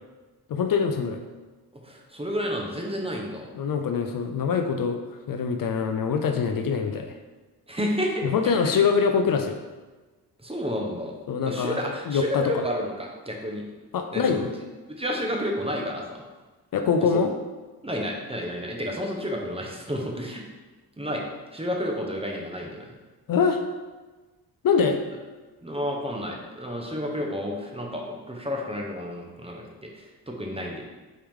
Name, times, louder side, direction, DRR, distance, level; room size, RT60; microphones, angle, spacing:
voice 1, 0.5-1.2 3.5-5.0 5.3-7.1 8.2-9.6 11.3-12.6 13.9-14.5 16.7-17.3 23.3-23.6 24.6-25.0, left 6 dB, 55° left, 6 dB, 0.5 m, -24 dB
voice 2, 1.8-3.5 7.7-8.7 10.4-11.1 11.4-13.6 14.1-14.5 14.9-16.2 17.8-20.4 21.0-21.2 21.5-22.9 25.6-30.8, equal, 15° right, 0 dB, 0.9 m, -31 dB
4.6 x 3.3 x 3.6 m, 1.3 s
cardioid pair, 60°, 40 cm